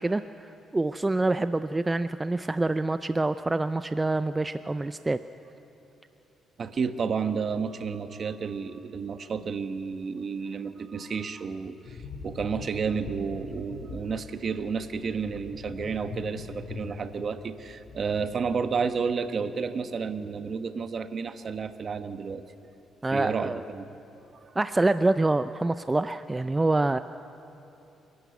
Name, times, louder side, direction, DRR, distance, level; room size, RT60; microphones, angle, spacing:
voice 1, 0.0-5.2 23.0-23.6 24.6-27.0, right 2 dB, 20° right, 12 dB, 0.4 m, -26 dB
voice 2, 6.6-22.4 23.1-23.8 24.4-24.5, right 5 dB, 50° right, 10 dB, 1.1 m, -31 dB
sound 1, 11.8-19.3 19.5-19.7, left 5 dB, 75° left, 2.2 m, -43 dB
28.5 x 12.0 x 8.3 m, 2.9 s
cardioid pair, 90°, 0 cm